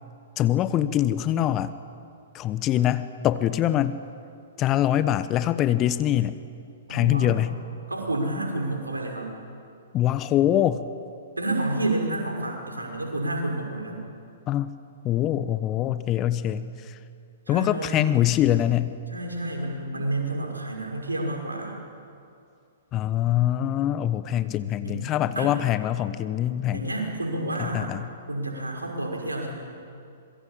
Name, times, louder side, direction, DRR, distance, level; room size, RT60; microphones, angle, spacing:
voice 1, 0.4-1.7 2.3-4.0 4.6-6.4 6.9-7.5 9.9-10.8 14.5-14.7 15.0-16.9 17.5-19.0 22.9-26.9 27.6-28.1, left 12 dB, 25° left, 14 dB, 1.1 m, -24 dB
voice 2, 6.9-7.3 7.9-9.3 11.4-14.0 17.5-18.0 19.1-21.8 24.8-25.5 26.7-27.9 28.3-29.5, right 1 dB, 80° right, 1 dB, 5.8 m, -29 dB
26.0 x 22.5 x 8.7 m, 2.5 s
figure-of-eight pair, 115°, 0 cm